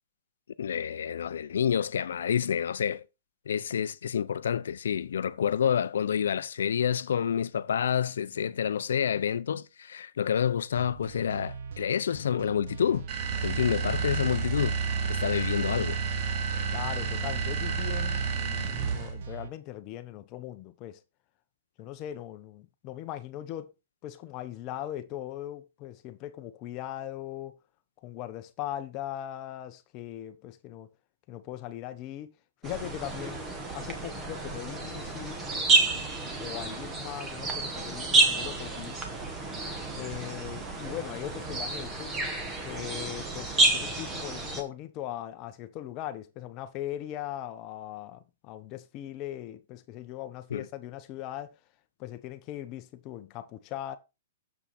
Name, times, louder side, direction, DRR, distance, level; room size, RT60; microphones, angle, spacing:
voice 1, 0.6-3.0 3.5-13.1 13.4-14.8 15.1-16.0 50.5-50.7, left 8 dB, 80° left, 0.5 m, -28 dB
sound 1, 10.8-19.5, right 6 dB, 65° right, 1.0 m, -41 dB
sound 2, 13.1-19.2, right 5 dB, 30° right, 1.4 m, -30 dB
voice 2, 16.7-21.0 21.8-23.7 24.0-27.6 28.0-30.9 31.3-32.4 32.6-33.5 33.7-35.4 36.4-39.0 39.9-42.1 42.6-51.5 52.0-54.0, left 12 dB, 30° left, 0.8 m, -39 dB
sound 3, 32.6-44.6, right 3 dB, 15° right, 1.5 m, -29 dB
7.3 x 5.9 x 4.2 m
hypercardioid pair, 160°, 0 cm